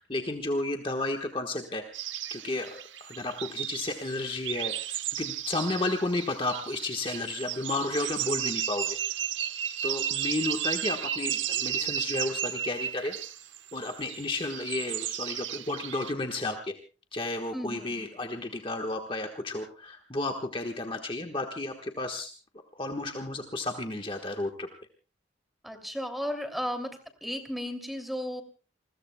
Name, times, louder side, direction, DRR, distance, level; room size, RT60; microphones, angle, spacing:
voice 1, 0.0-1.8 2.3-9.0 9.8-13.2 13.7-16.7 17.1-22.3 22.7-24.7, left 2 dB, 25° left, 4 dB, 1.3 m, -32 dB
sound 1, 1.9-16.1, right 10 dB, 90° right, 1.0 m, -34 dB
voice 2, 17.5-18.0 25.6-26.9 27.2-28.4, equal, ahead, 6 dB, 2.6 m, -34 dB
29.0 x 21.5 x 2.2 m, 0.35 s
head